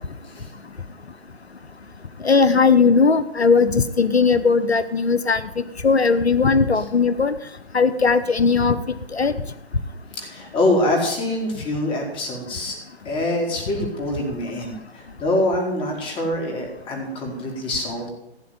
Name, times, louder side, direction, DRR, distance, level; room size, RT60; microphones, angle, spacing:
voice 1, 2.2-5.4 5.8-7.3 7.7-8.8 9.1-9.3, left 5 dB, 80° left, 14 dB, 1.1 m, -18 dB
voice 2, 10.1-12.8 13.0-18.1, left 1 dB, 15° left, 2 dB, 4.6 m, -25 dB
17.0 x 8.6 x 9.4 m, 0.81 s
figure-of-eight pair, 130°, 32 cm